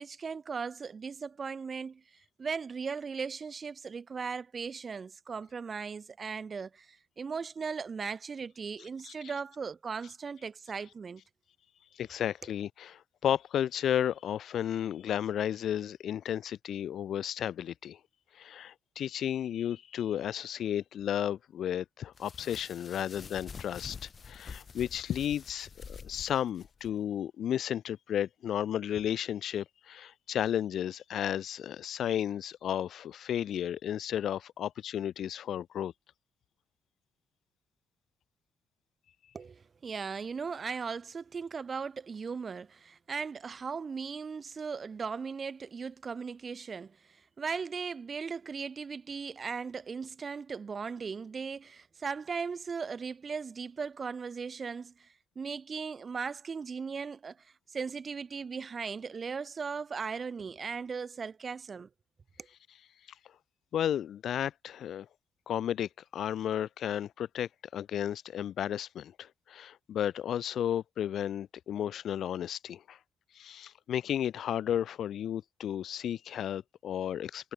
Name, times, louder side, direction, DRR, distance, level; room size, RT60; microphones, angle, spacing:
voice 1, 0.0-2.0 2.4-11.2 39.3-61.9, right 5 dB, 40° right, 0.8 m, -38 dB
voice 2, 9.0-9.4 12.0-18.0 18.3-35.9 63.7-65.1 65.5-73.0 73.3-77.5, left 10 dB, 70° left, 1.8 m, -33 dB
sound 1, 22.1-26.9, left 5 dB, 40° left, 2.2 m, -47 dB
cardioid pair, 90°, 0 cm